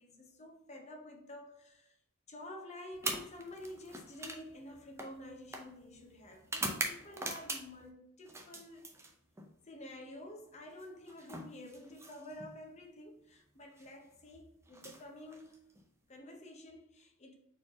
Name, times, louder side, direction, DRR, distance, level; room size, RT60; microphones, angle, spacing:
voice 1, 0.0-1.9 2.3-8.8 9.7-15.6 16.1-17.3, left 1 dB, 30° left, 0.7 m, -50 dB
sound 1, 2.9-7.9 8.3-9.5 10.7-12.5 13.6-13.9 14.7-15.8, right 2 dB, 10° right, 0.5 m, -42 dB
4.3 x 3.2 x 3.6 m
head